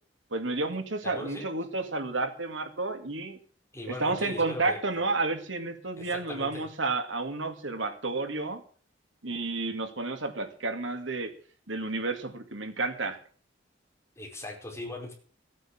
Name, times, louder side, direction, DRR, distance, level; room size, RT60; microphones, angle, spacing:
voice 1, 0.3-3.4 3.9-8.6 9.2-11.3 11.7-13.2, right 3 dB, 75° right, 7 dB, 2.3 m, -31 dB
voice 2, 1.0-1.5 3.7-4.8 6.0-6.6 14.2-15.1, left 1 dB, 15° left, -1 dB, 4.8 m, -39 dB
15.5 x 9.1 x 7.4 m, 0.43 s
head